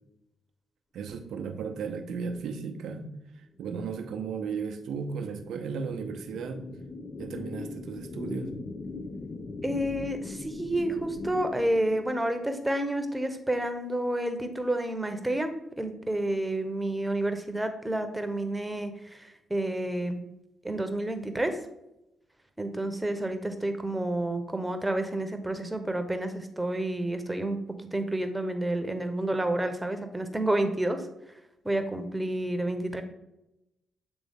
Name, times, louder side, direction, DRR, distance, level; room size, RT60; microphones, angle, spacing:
voice 1, 0.9-6.6 7.2-8.5, right 5 dB, 70° right, 5 dB, 0.7 m, -35 dB
sound 1, 4.0-12.5, left 3 dB, 45° left, 0.7 m, -41 dB
voice 2, 9.6-15.5 15.8-20.2 20.6-21.6 22.6-27.6 27.9-31.0 31.6-33.0, right 1 dB, 15° right, 7 dB, 1.0 m, -29 dB
7.8 x 3.5 x 3.6 m, 0.89 s
hypercardioid pair, 40°, 0 cm